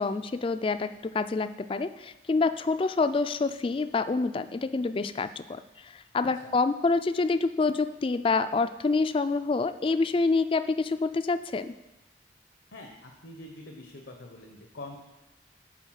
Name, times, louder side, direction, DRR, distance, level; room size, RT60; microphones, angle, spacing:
voice 1, 0.0-11.7, left 3 dB, 30° left, 11 dB, 0.3 m, -27 dB
voice 2, 12.7-15.0, left 2 dB, 80° left, 3 dB, 0.9 m, -45 dB
10.0 x 4.1 x 6.3 m, 0.97 s
head